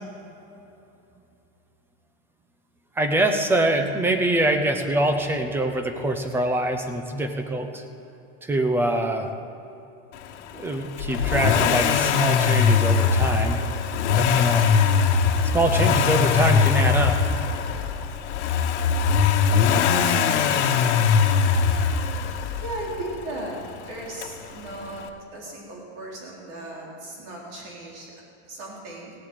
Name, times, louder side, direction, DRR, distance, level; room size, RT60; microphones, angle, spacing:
voice 1, 3.0-7.8 8.4-9.3 10.5-13.7 14.1-14.7 15.5-17.4, right 1 dB, 5° right, 6 dB, 0.7 m, -24 dB
Accelerating revving vroom, 11.0-22.9 24.2-24.3, left 6 dB, 75° left, 1.4 m, -21 dB
voice 2, 22.6-23.6 23.8-28.1 28.5-29.1, right 1 dB, 55° right, -3 dB, 4.1 m, -36 dB
16.5 x 8.2 x 9.0 m, 2.8 s
supercardioid pair, 165°, 35 cm